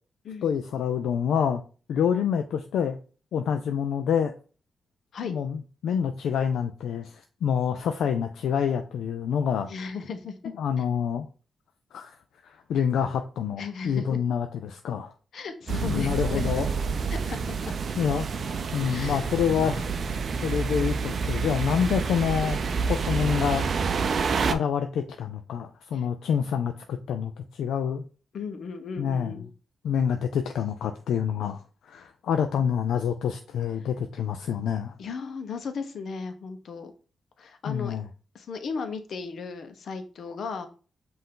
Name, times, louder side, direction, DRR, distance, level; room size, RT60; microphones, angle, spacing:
voice 1, 0.4-1.6 1.9-3.0 3.3-4.3 5.2-9.7 10.6-11.3 11.9-12.2 12.4-15.1 15.8-16.7 18.0-22.6 22.9-23.7 24.5-28.0 29.0-29.4 29.8-34.9 37.7-38.1, left 7 dB, 90° left, 0.3 m, -27 dB
voice 2, 9.7-10.3 13.6-14.2 15.3-16.5 17.1-17.8 18.8-19.7 25.9-26.1 28.3-29.5 35.0-36.9 37.4-37.9 38.3-40.7, left 5 dB, 70° left, 0.7 m, -36 dB
sound 1, 15.7-24.5, right 5 dB, 60° right, 0.4 m, -28 dB
5.5 x 2.6 x 3.7 m
cardioid pair, 80°, 0 cm